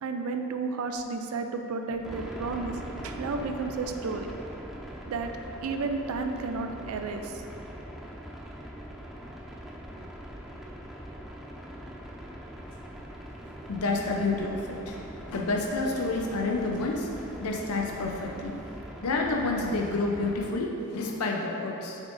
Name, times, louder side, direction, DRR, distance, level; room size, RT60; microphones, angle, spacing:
voice 1, 0.0-4.3 5.1-5.3 5.6-7.4, right 4 dB, 75° right, 5 dB, 0.4 m, -32 dB
sound 1, 2.0-20.5, equal, ahead, 0.4 m, -42 dB
voice 2, 13.7-15.0 15.3-17.1 17.4-18.6 19.0-22.0, left 3 dB, 85° left, 0 dB, 0.6 m, -29 dB
7.3 x 6.2 x 2.6 m, 2.9 s
head